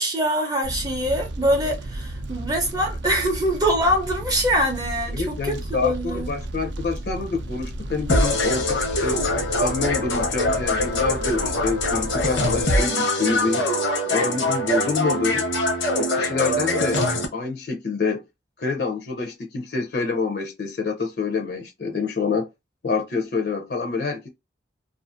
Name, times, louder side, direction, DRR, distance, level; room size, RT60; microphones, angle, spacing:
voice 1, 0.0-6.3, equal, 20° right, 0.5 m, -24 dB
Fire, 0.6-12.6, right 1 dB, 75° right, 0.4 m, -33 dB
voice 2, 5.1-9.2 9.5-13.7 14.1-15.4 15.9-17.0 17.3-18.2 18.6-22.5 22.8-24.3, left 4 dB, 55° left, 0.5 m, -27 dB
sound 1, 8.1-17.3, left 1 dB, 85° left, 0.8 m, -23 dB
2.5 x 2.4 x 2.4 m
head